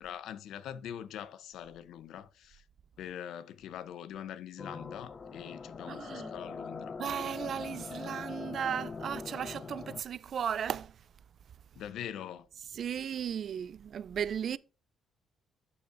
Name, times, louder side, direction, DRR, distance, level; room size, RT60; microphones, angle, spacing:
voice 1, 0.0-2.6 3.0-7.0 11.8-12.5, left 10 dB, 80° left, 0.6 m, -43 dB
sound 1, 4.6-10.0, left 4 dB, 40° left, 0.6 m, -42 dB
voice 2, 5.8-6.3 7.0-10.9 12.6-14.6, right 8 dB, 60° right, 0.4 m, -35 dB
11.5 x 5.4 x 2.5 m
cardioid pair, 90°, 0 cm